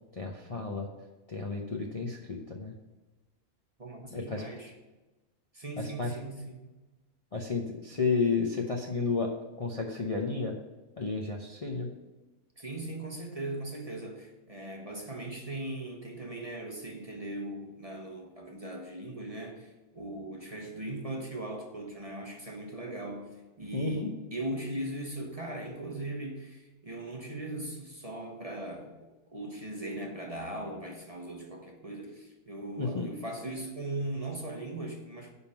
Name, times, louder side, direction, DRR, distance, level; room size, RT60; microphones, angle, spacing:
voice 1, 0.2-0.9 1.3-2.7 4.1-4.4 5.8-6.1 7.3-9.3 9.6-10.6 11.0-11.9 23.7-24.1 32.8-33.1, left 4 dB, 30° left, 0 dB, 0.7 m, -32 dB
voice 2, 3.8-4.7 5.5-6.6 12.6-29.0 29.3-35.3, right 1 dB, 25° right, 0 dB, 1.1 m, -39 dB
9.8 x 3.8 x 7.1 m, 1.1 s
omnidirectional pair, 1.5 m